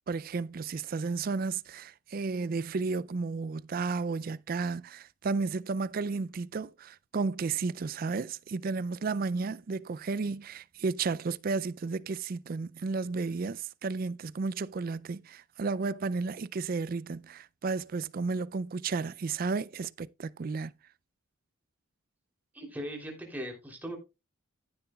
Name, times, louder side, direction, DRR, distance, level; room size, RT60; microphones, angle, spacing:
voice 1, 0.1-20.7, right 4 dB, 45° right, 0.4 m, -33 dB
voice 2, 22.5-24.0, equal, 10° right, 3.1 m, -39 dB
15.0 x 6.9 x 2.3 m
head